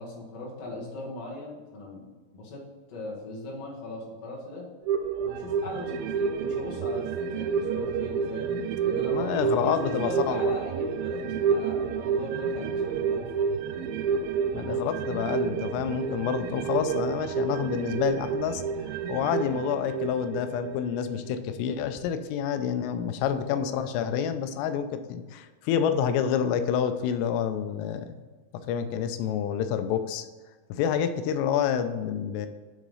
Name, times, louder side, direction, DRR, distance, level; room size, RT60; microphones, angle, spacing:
voice 1, 0.0-2.6 2.9-4.7 5.2-8.6 8.8-13.3 23.5-23.9, left 2 dB, 45° left, -4 dB, 2.5 m, -39 dB
sound 1, 4.8-21.6 22.0-22.1, right 6 dB, 90° right, 2.1 m, -29 dB
voice 2, 9.1-10.4 14.5-28.1 28.7-30.3 30.7-32.5, left 8 dB, 90° left, 9 dB, 2.7 m, -28 dB
9.2 x 3.8 x 5.5 m, 1.3 s
omnidirectional pair, 4.8 m